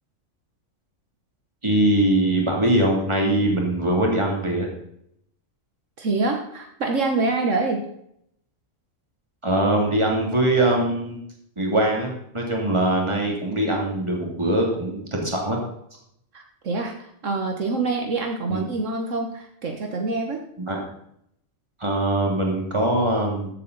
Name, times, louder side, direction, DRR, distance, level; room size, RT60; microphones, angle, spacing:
voice 1, 1.6-4.7 9.4-11.2 11.6-15.6 18.5-18.6 20.7-20.8 21.8-23.5, right 1 dB, 20° right, -1 dB, 2.8 m, -22 dB
voice 2, 6.0-7.9 16.3-20.4, right 3 dB, 70° right, 3 dB, 1.5 m, -26 dB
14.5 x 8.2 x 4.0 m, 0.73 s
omnidirectional pair, 1.4 m